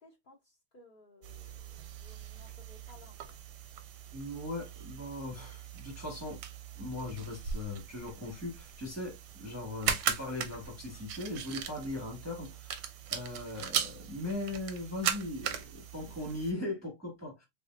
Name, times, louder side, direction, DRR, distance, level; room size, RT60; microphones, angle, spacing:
voice 1, 0.0-3.4, left 2 dB, 60° left, 0.5 m, -59 dB
sound 1, 1.2-16.5, right 8 dB, 70° right, 1.1 m, -39 dB
voice 2, 4.1-6.4 6.8-12.8 13.1-17.5, left 2 dB, 10° left, 1.3 m, -39 dB
4.0 x 3.3 x 2.6 m
omnidirectional pair, 2.4 m